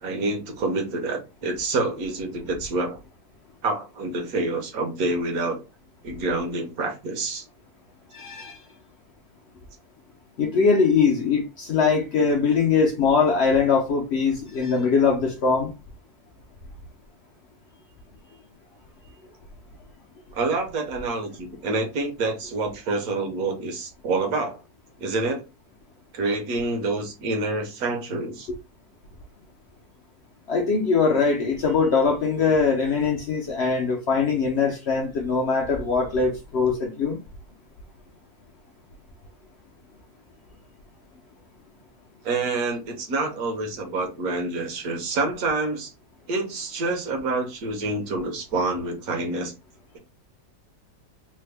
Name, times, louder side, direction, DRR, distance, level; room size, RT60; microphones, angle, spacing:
voice 1, 0.0-3.0 3.6-5.6 6.0-7.4 20.3-24.6 25.0-25.4 26.1-28.5 42.2-45.9 46.3-49.5, right 3 dB, 70° right, 1.3 m, -27 dB
voice 2, 8.1-8.6 10.4-15.7 30.5-37.2, left 5 dB, 60° left, 0.7 m, -22 dB
3.4 x 2.1 x 3.3 m
omnidirectional pair, 1.6 m